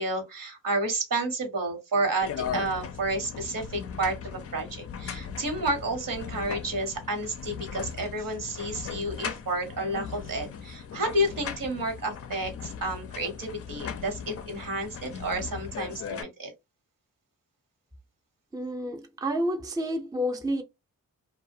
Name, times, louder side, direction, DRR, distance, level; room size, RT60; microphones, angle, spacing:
voice 1, 0.0-16.5, right 2 dB, 70° right, 1.1 m, -31 dB
sound 1, 2.2-16.2, left 7 dB, 45° left, 0.4 m, -38 dB
voice 2, 18.5-20.6, equal, 10° right, 0.5 m, -29 dB
2.4 x 2.1 x 2.6 m
cardioid pair, 75°, 34 cm